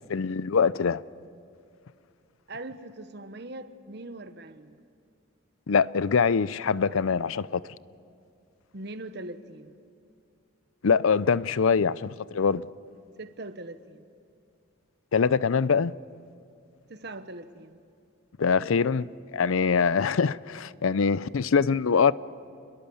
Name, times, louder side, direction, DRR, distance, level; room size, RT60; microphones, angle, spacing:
voice 1, 0.1-1.0 5.7-7.6 10.8-12.7 15.1-15.9 18.4-19.1 19.3-22.1, left 5 dB, 80° left, 0.5 m, -23 dB
voice 2, 2.5-4.8 8.7-9.8 13.2-14.1 16.9-17.8, right 2 dB, 55° right, 1.2 m, -41 dB
29.0 x 22.0 x 7.1 m
head